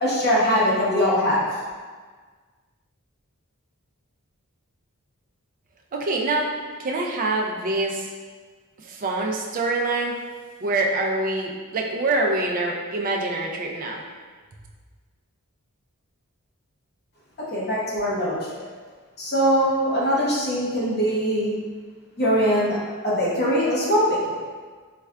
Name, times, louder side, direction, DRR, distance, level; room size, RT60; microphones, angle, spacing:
voice 1, 0.0-1.5 17.5-18.4 19.2-21.5 22.2-22.8 23.0-24.4, equal, 45° left, -7 dB, 0.9 m, -22 dB
voice 2, 5.9-6.5 6.8-8.1 8.8-10.2 10.6-14.0, right 2 dB, 40° right, 0 dB, 0.4 m, -25 dB
4.3 x 2.4 x 2.2 m, 1.5 s
head